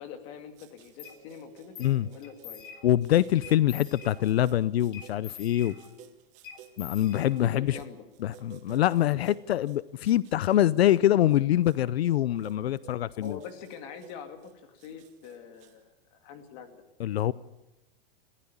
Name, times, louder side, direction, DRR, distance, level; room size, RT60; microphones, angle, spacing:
voice 1, 0.0-2.7 7.4-8.1 13.1-16.8, left 7 dB, 30° left, 2.4 m, -44 dB
sound 1, 0.6-15.7, right 11 dB, 25° right, 1.4 m, -54 dB
sound 2, 1.0-1.2 1.8-2.0 2.2-3.0 3.4-4.4 4.9-6.1 6.4-7.7, left 8 dB, 60° left, 3.3 m, -46 dB
voice 2, 2.8-5.8 6.8-7.8 8.2-13.4 17.0-17.3, left 12 dB, 90° left, 0.7 m, -24 dB
22.5 x 15.5 x 8.7 m
supercardioid pair, 170°, 30 cm